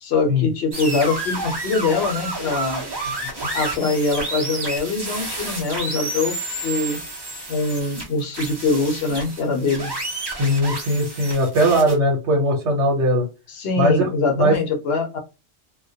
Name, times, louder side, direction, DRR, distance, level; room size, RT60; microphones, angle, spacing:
voice 1, 0.0-2.8 3.5-6.4 6.6-7.0 7.5-9.9 13.5-15.2, left 3 dB, 65° left, 4 dB, 0.8 m, -23 dB
sound 1, 0.7-11.9, right 2 dB, 25° right, 0.6 m, -30 dB
voice 2, 10.4-13.2 13.8-14.1 14.3-14.5, equal, 75° right, 0 dB, 1.0 m, -19 dB
2.2 x 2.1 x 2.6 m, 0.28 s
omnidirectional pair, 1.2 m